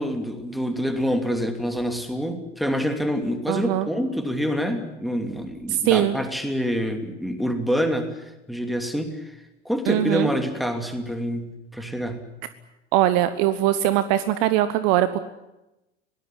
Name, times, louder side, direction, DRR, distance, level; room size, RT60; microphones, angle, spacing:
voice 1, 0.0-9.3 9.6-12.2, equal, ahead, 7 dB, 2.8 m, -26 dB
voice 2, 3.5-3.9 5.7-6.2 9.9-10.3 12.9-15.2, right 13 dB, 40° right, 14 dB, 1.1 m, -21 dB
22.0 x 18.0 x 10.0 m, 0.95 s
figure-of-eight pair, 90°, 35 cm